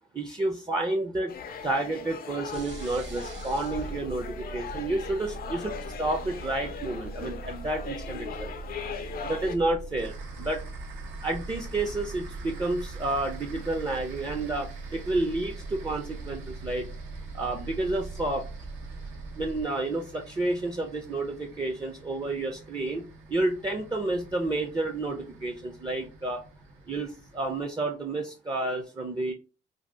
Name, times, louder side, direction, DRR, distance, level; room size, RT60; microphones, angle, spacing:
voice 1, 0.1-1.3 1.6-8.5 9.2-10.1 10.4-10.6 11.2-16.9 17.3-18.4 19.4-26.4 26.9-29.3, right 2 dB, 20° right, 4 dB, 0.5 m, -30 dB
sound 1, 1.3-9.6, left 6 dB, 50° left, 0.4 m, -39 dB
sound 2, 2.5-19.6, right 4 dB, 70° right, 0.5 m, -41 dB
sound 3, 10.0-27.6, right 1 dB, 85° right, 1.0 m, -48 dB
2.7 x 2.3 x 3.3 m, 0.32 s
cardioid pair, 90°, 20 cm